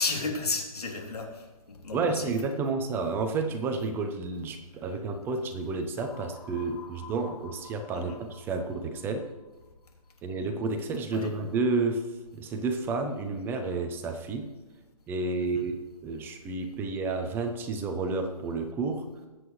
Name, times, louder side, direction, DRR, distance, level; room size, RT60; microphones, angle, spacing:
voice 1, 0.0-2.3 7.9-8.2 11.1-11.3 15.5-15.6, left 3 dB, 90° left, 0 dB, 3.0 m, -33 dB
voice 2, 1.9-9.2 10.2-12.0 12.3-14.5 15.1-15.8 16.0-19.0, right 3 dB, 10° right, 6 dB, 0.6 m, -30 dB
sound 1, 6.0-9.9, left 6 dB, 20° left, 3.6 m, -50 dB
21.0 x 8.2 x 3.2 m, 1.2 s
hypercardioid pair, 150°, 19 cm